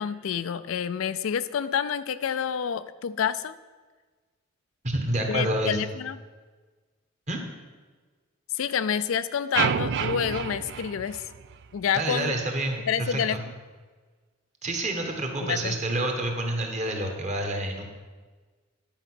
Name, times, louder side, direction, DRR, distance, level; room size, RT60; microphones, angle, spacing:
voice 1, 0.0-3.6 5.3-6.2 8.5-11.2 11.7-12.3 12.9-13.4 15.4-15.8, left 8 dB, 75° left, 14 dB, 0.4 m, -28 dB
voice 2, 4.8-5.8 7.3-7.4 11.9-13.4 14.6-17.8, right 1 dB, 35° right, 2 dB, 1.3 m, -28 dB
sound 1, 9.5-11.8, right 7 dB, 55° right, 0.4 m, -29 dB
10.5 x 4.9 x 6.1 m, 1.4 s
head